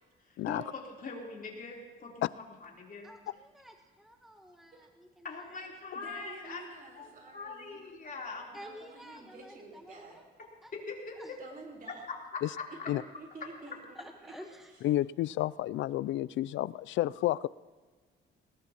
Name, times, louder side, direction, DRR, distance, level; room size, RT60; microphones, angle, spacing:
voice 1, 0.4-3.1 5.2-6.6 7.0-8.5 10.7-11.2 12.8-12.9, left 4 dB, 45° left, -2 dB, 3.6 m, -42 dB
voice 2, 3.0-5.7 8.5-10.2 10.6-10.7 11.1-11.3 13.9-14.7, equal, ahead, 3 dB, 1.2 m, -51 dB
voice 3, 5.9-7.8 8.5-10.2 11.4-12.1 12.7-14.3, right 3 dB, 45° right, 0 dB, 4.2 m, -49 dB
voice 4, 14.8-17.5, left 14 dB, 75° left, 20 dB, 0.4 m, -30 dB
20.0 x 19.0 x 3.0 m, 1.4 s
cardioid pair, 90°, 20 cm